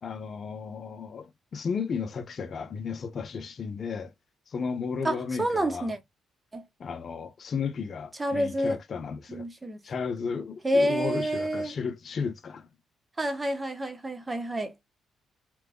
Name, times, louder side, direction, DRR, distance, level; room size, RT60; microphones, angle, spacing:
voice 1, 0.0-4.1 4.5-5.9 6.8-9.5 9.8-12.7, left 5 dB, 50° left, 0.8 m, -34 dB
voice 2, 5.0-6.0 6.5-6.6 8.2-8.8 9.3-9.8 10.6-11.7 13.2-14.7, equal, 20° right, 1.0 m, -28 dB
4.7 x 3.8 x 2.3 m
cardioid pair, 90°, 0 cm